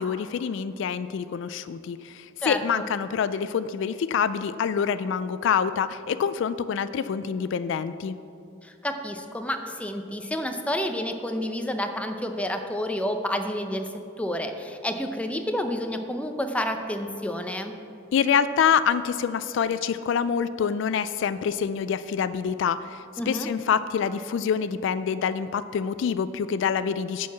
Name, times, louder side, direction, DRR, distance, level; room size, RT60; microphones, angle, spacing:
voice 1, 0.0-8.2 18.1-27.3, left 7 dB, 70° left, 14 dB, 0.3 m, -26 dB
voice 2, 2.4-2.9 8.6-13.9 14.2-17.7 23.2-23.5, left 1 dB, 5° left, 6 dB, 0.6 m, -29 dB
10.5 x 4.7 x 7.0 m, 2.7 s
head